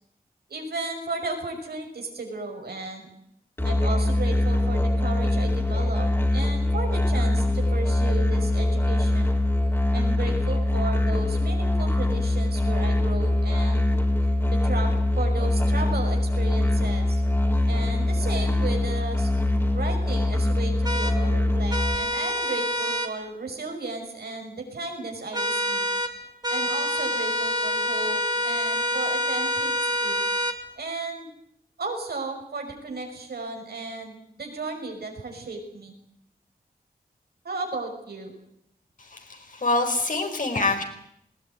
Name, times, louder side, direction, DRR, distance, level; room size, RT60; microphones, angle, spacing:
voice 1, 0.5-3.1 3.6-9.4 9.9-13.9 14.5-17.2 17.7-19.3 19.7-25.9 26.5-30.2 30.8-31.3 31.8-36.0 37.4-38.3, right 3 dB, 85° right, 3 dB, 5.8 m, -34 dB
Musical instrument, 3.6-22.0, left 2 dB, 15° left, 3.9 m, -23 dB
sound 1, 20.9-21.1 21.7-23.1 25.3-26.1 26.4-30.6, equal, 25° right, 2.4 m, -26 dB
voice 2, 39.0-40.8, left 2 dB, 55° left, 5 dB, 4.8 m, -26 dB
20.5 x 17.5 x 9.5 m, 0.74 s
wide cardioid pair, 70°, 16 cm